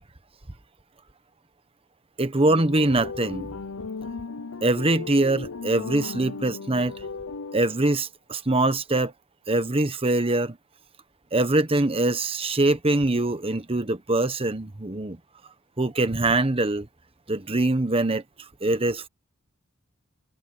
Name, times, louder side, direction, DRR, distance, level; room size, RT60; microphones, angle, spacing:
voice 1, 2.2-3.5 4.6-6.9 7.5-9.1 9.5-10.6 11.3-15.2 15.8-16.9 17.3-18.2 18.6-19.1, right 2 dB, 25° right, 1.2 m, -23 dB
sound 1, 2.5-7.9, left 4 dB, 75° left, 0.7 m, -36 dB
head